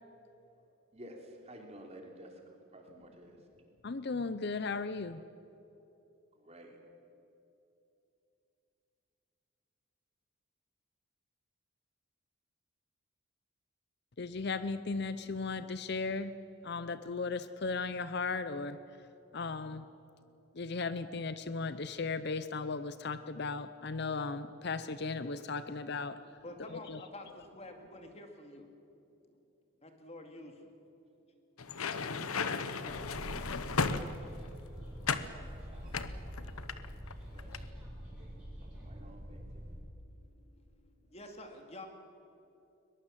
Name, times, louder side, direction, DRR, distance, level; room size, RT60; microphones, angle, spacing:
voice 1, 0.5-3.7 6.3-6.8 33.4-37.0 37.2-37.7 38.1-39.7, right 1 dB, 30° right, 3.3 m, -55 dB
voice 2, 3.8-5.2 14.2-16.3 16.6-18.8 19.3-19.9 20.5-26.4 26.9-27.0, left 4 dB, 50° left, 0.6 m, -36 dB
voice 3, 26.1-29.5 29.7-30.8 31.1-33.1 36.2-41.9, left 1 dB, 30° left, 2.2 m, -53 dB
sound 1, 31.6-34.5 35.0-35.3 35.9-37.1 37.4-37.7, left 4 dB, 90° left, 1.1 m, -35 dB
sound 2, 32.9-39.8, equal, 5° right, 7.0 m, -46 dB
21.5 x 21.5 x 7.5 m
head